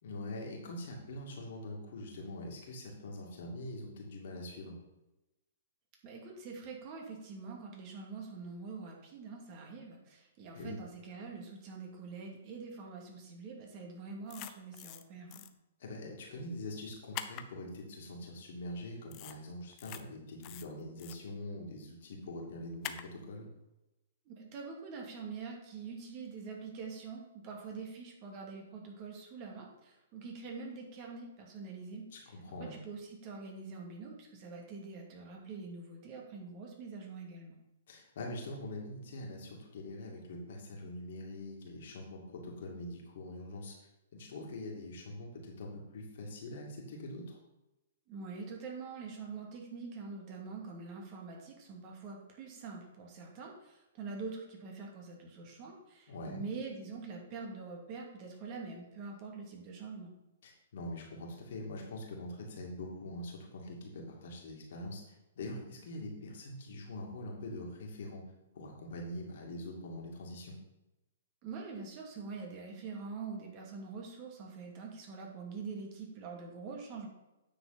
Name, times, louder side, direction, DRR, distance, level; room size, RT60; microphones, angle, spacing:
voice 1, 0.0-4.8 10.5-10.8 15.8-23.5 32.1-32.8 37.9-43.7 44.1-47.4 56.1-56.4 60.4-68.2 68.5-70.6, left 1 dB, 60° left, -1 dB, 2.4 m, -44 dB
voice 2, 6.0-15.4 24.3-32.3 32.6-37.6 48.1-60.1 71.4-77.1, right 4 dB, 40° right, 0 dB, 2.4 m, -45 dB
sound 1, 14.3-15.0 15.3-15.5 17.1-17.4 19.1-19.4 19.7-20.0 20.4-21.1 22.8-23.0, left 12 dB, 35° left, 0.6 m, -43 dB
9.4 x 6.6 x 4.2 m, 0.98 s
figure-of-eight pair, 115°, 0 cm